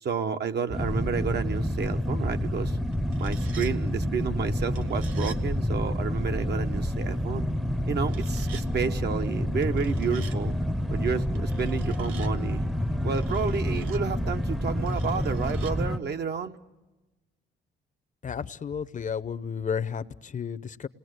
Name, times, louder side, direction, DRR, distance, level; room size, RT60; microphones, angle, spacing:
voice 1, 0.0-2.8 3.2-7.5 7.9-10.6 10.9-12.6 13.0-16.6, right 6 dB, 55° right, 7 dB, 1.4 m, -31 dB
sound 1, 0.7-16.0, equal, ahead, 0.8 m, -28 dB
sound 2, 2.9-3.7 4.7-5.4 8.0-8.7 9.6-10.4 11.3-12.3 13.1-14.0 14.9-15.7, right 6 dB, 85° right, 1.4 m, -47 dB
voice 2, 18.2-20.9, left 7 dB, 40° left, 14 dB, 0.8 m, -32 dB
28.5 x 20.0 x 8.0 m, 1.1 s
cardioid pair, 90°, 20 cm